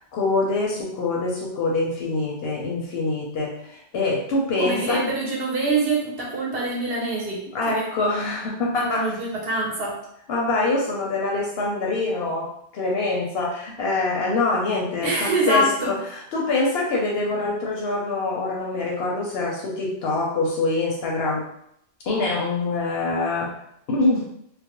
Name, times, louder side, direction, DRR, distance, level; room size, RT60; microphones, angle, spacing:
voice 1, 0.1-5.0 7.5-9.2 10.3-21.5 22.1-23.5 23.9-24.3, left 2 dB, 65° left, -2 dB, 0.7 m, -25 dB
voice 2, 4.6-7.8 8.8-10.0 15.0-15.9, right 2 dB, 60° right, -3 dB, 0.8 m, -25 dB
2.3 x 2.1 x 2.8 m, 0.73 s
omnidirectional pair, 1.3 m